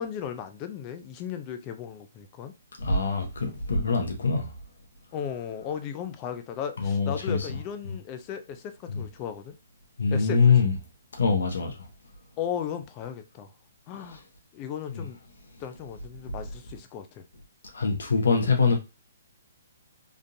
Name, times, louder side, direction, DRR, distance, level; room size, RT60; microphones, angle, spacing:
voice 1, 0.0-2.5 5.1-9.5 10.1-10.4 12.4-13.5 13.9-14.2 14.5-15.2 15.6-17.2, left 8 dB, 25° left, 0.5 m, -36 dB
voice 2, 2.8-4.5 6.8-7.6 7.8-7.9 8.9-9.0 10.0-10.7 11.2-11.7 14.1-14.2 14.9-15.0 17.7-18.8, left 4 dB, 80° left, 1.2 m, -24 dB
3.6 x 2.5 x 2.7 m
hypercardioid pair, 155°, 0 cm